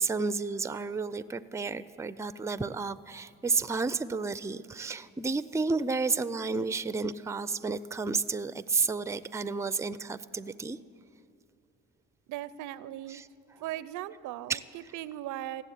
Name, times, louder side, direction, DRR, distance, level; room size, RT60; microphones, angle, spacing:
voice 1, 0.0-10.8 13.1-13.2 14.5-14.6, right 4 dB, 10° right, 14 dB, 0.4 m, -31 dB
voice 2, 12.3-13.2 13.6-15.6, right 13 dB, 90° right, 17 dB, 0.5 m, -38 dB
15.5 x 7.1 x 9.9 m, 2.7 s
cardioid pair, 90°, 30 cm